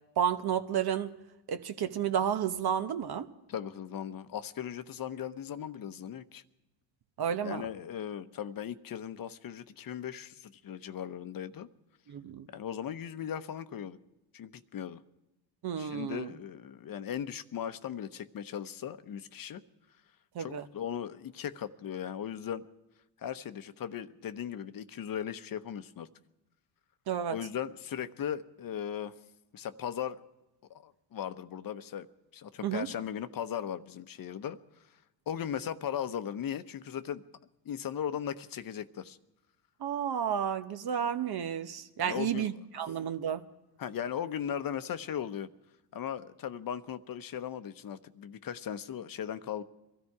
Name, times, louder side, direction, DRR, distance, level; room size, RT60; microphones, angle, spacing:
voice 1, 0.2-1.1 1.5-3.3 7.2-7.7 12.1-12.5 15.6-16.3 20.3-20.7 27.1-27.4 32.6-32.9 39.8-43.4, right 8 dB, 50° right, 1.0 m, -31 dB
voice 2, 3.5-6.4 7.4-11.7 12.5-14.0 14.3-15.0 15.8-19.6 20.4-22.7 23.2-26.1 27.3-29.1 29.5-30.2 30.7-32.1 32.3-34.6 35.3-37.2 37.6-39.2 42.0-42.5 43.8-45.5 45.9-49.6, left 9 dB, 45° left, 0.9 m, -38 dB
23.0 x 13.5 x 4.8 m
supercardioid pair, 85°, 49 cm